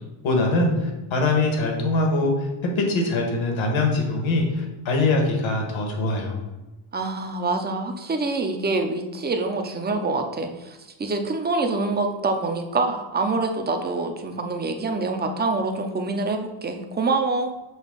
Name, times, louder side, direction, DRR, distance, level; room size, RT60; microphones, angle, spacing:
voice 1, 0.2-2.3 2.7-6.4, left 2 dB, 70° left, 1 dB, 1.6 m, -23 dB
voice 2, 6.9-17.5, right 3 dB, 20° right, 5 dB, 0.6 m, -26 dB
6.4 x 2.9 x 5.2 m, 1.1 s
cardioid pair, 120°, 49 cm